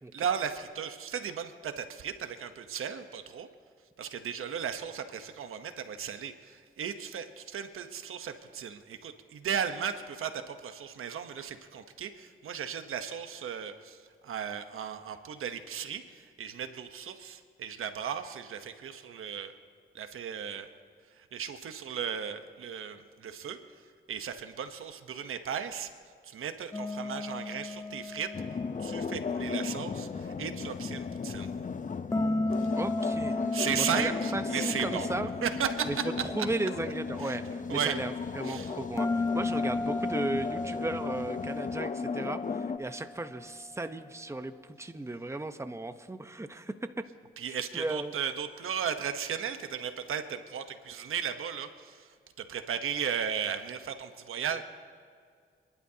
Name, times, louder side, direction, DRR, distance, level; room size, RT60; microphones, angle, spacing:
voice 1, 0.1-3.5 4.0-19.5 19.9-20.7 21.1-23.6 24.1-25.9 26.2-28.3 28.8-31.5 33.5-35.1 35.4-36.1 37.2-37.4 37.7-38.0 38.4-38.7 47.4-52.1 52.4-54.6, right 8 dB, 80° right, 8 dB, 1.0 m, -35 dB
sound 1, 26.7-29.8 32.1-36.6 39.0-43.5, left 2 dB, 15° left, 0.4 m, -35 dB
sound 2, 28.3-42.8, left 5 dB, 40° left, 0.8 m, -36 dB
voice 2, 32.8-33.4 33.8-35.3 35.9-46.7 47.7-48.1 54.5-54.6, right 2 dB, 15° right, 8 dB, 0.9 m, -36 dB
27.5 x 11.5 x 2.8 m, 2.1 s
cardioid pair, 60°, 21 cm